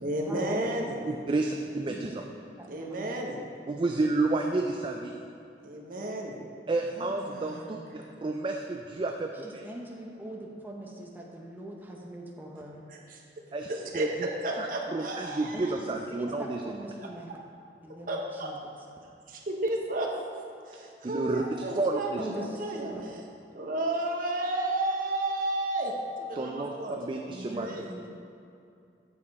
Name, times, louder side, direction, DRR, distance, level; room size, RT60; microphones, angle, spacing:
voice 1, 0.0-1.0 2.7-3.4 5.6-6.3 6.9-8.1 13.1-13.2 13.7-15.7 18.1-18.5 19.3-20.1 20.7-22.9 23.5-25.9 26.2-26.9 27.5-27.9, right 1 dB, 50° right, -1 dB, 1.0 m, -32 dB
voice 2, 1.0-2.2 3.7-5.1 6.7-9.7 13.5-14.1 14.6-16.6 21.0-21.4 21.8-22.2 26.4-27.7, right 2 dB, 30° right, 3 dB, 0.3 m, -31 dB
voice 3, 1.9-2.2 2.6-3.1 9.4-12.8 15.5-15.8 16.1-17.3 17.8-18.7 22.2-23.0 27.3-28.1, right 1 dB, 10° right, -1 dB, 0.7 m, -42 dB
7.5 x 6.7 x 4.1 m, 2.6 s
head